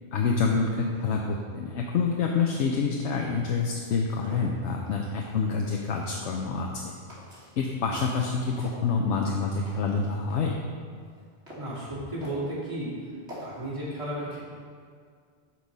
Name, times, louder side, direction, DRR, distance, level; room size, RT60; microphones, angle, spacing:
voice 1, 0.1-6.9 7.6-10.5, left 5 dB, 90° left, 0 dB, 1.0 m, -27 dB
sound 1, 3.9-5.0 5.8-6.7 7.1-8.2 8.6-10.5 11.0-11.8 12.2-12.5 13.3-13.7, equal, 85° right, 2.2 m, -45 dB
voice 2, 11.5-13.0 13.4-14.4, right 1 dB, 30° right, -8 dB, 2.2 m, -33 dB
8.3 x 4.6 x 5.3 m, 2.1 s
omnidirectional pair, 1.1 m